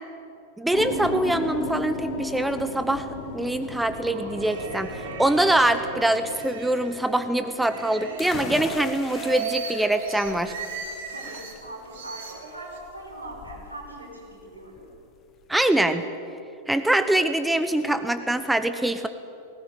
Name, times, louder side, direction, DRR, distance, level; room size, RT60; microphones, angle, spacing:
voice 1, 0.6-3.1 3.3-4.9 5.2-10.5 15.5-16.0 16.7-19.1, right 1 dB, 5° right, 11 dB, 0.9 m, -24 dB
sound 1, 0.7-9.1, left 2 dB, 45° left, 3.1 m, -36 dB
sound 2, 4.0-7.1 7.6-11.6 11.9-12.8, right 5 dB, 55° right, 3.2 m, -36 dB
sound 3, 8.2-15.7, left 7 dB, 30° left, 1.6 m, -41 dB
voice 2, 11.1-14.9, right 1 dB, 80° right, -2 dB, 6.0 m, -41 dB
19.5 x 17.5 x 9.1 m, 2.7 s
figure-of-eight pair, 90°, 0 cm